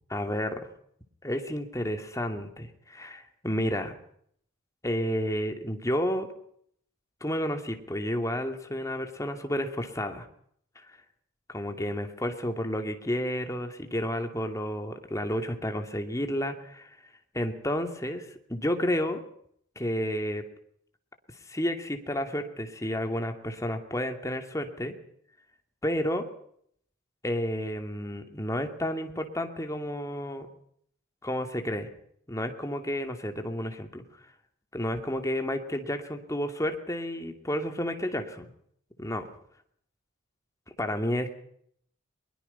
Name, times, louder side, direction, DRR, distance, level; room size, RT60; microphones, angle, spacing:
voice 1, 0.1-0.7 1.2-3.9 4.8-6.3 7.2-10.3 11.5-16.9 17.3-19.2 19.8-20.4 21.5-24.9 25.8-26.2 27.2-30.5 31.2-31.9 32.3-34.0 34.7-38.4 39.0-39.3 40.8-41.4, equal, 15° left, 5 dB, 2.6 m, -31 dB
22.5 x 22.0 x 5.7 m, 0.66 s
head